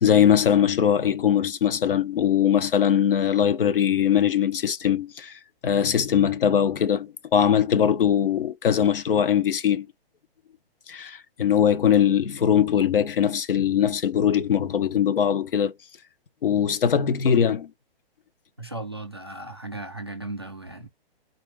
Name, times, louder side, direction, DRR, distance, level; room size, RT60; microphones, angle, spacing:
voice 1, 0.0-9.9 10.9-15.7 16.4-17.7, left 8 dB, 60° left, 0.9 m, -21 dB
voice 2, 18.6-20.9, right 2 dB, 25° right, 0.3 m, -36 dB
4.1 x 2.4 x 3.2 m
hypercardioid pair, 180°, 31 cm